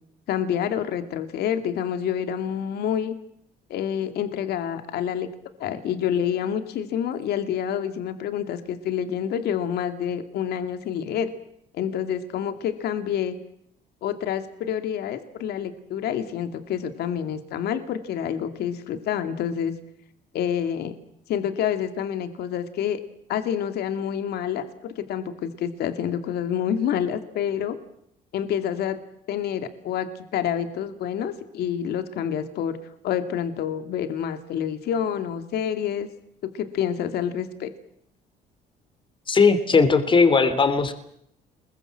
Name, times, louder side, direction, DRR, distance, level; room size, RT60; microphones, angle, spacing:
voice 1, 0.3-3.1 3.7-5.3 5.6-11.3 11.7-13.4 14.0-19.8 20.3-20.9 21.3-23.0 23.3-27.8 28.3-29.0 29.3-32.8 33.0-36.1 36.5-37.7, left 9 dB, 70° left, 9 dB, 2.3 m, -28 dB
voice 2, 39.3-40.9, left 4 dB, 30° left, 11 dB, 3.2 m, -18 dB
28.0 x 22.0 x 7.6 m, 0.72 s
cardioid pair, 110°, 17 cm